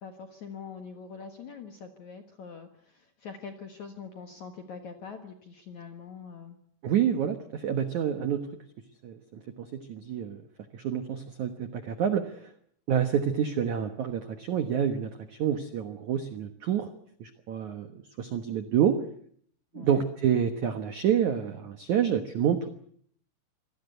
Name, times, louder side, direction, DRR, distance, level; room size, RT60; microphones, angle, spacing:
voice 1, 0.0-6.6 19.7-20.0, left 5 dB, 65° left, 6 dB, 1.9 m, -44 dB
voice 2, 6.8-8.5 9.0-10.4 10.7-12.5 12.9-16.9 17.2-17.9 18.2-19.0 19.7-22.7, right 8 dB, 80° right, 9 dB, 1.7 m, -28 dB
26.0 x 18.5 x 8.1 m, 0.62 s
omnidirectional pair, 5.6 m